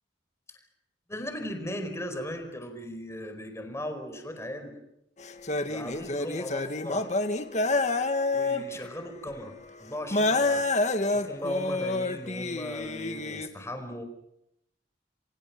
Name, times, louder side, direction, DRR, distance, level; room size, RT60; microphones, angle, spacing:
voice 1, 1.1-4.8 5.7-7.2 8.3-10.7 11.1-14.0, left 1 dB, 15° left, 7 dB, 4.6 m, -37 dB
sound 1, 5.2-8.9 9.3-9.4 10.1-13.5, left 2 dB, 40° left, 1.8 m, -28 dB
28.5 x 27.0 x 6.0 m, 0.79 s
head